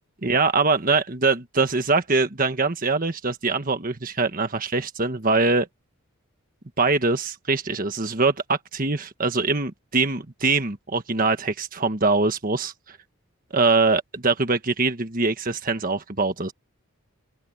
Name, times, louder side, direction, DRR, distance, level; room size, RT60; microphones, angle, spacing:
voice 1, 0.2-5.7 6.8-13.0 13.5-16.5, right 3 dB, 40° right, 1.4 m, -23 dB
open air
head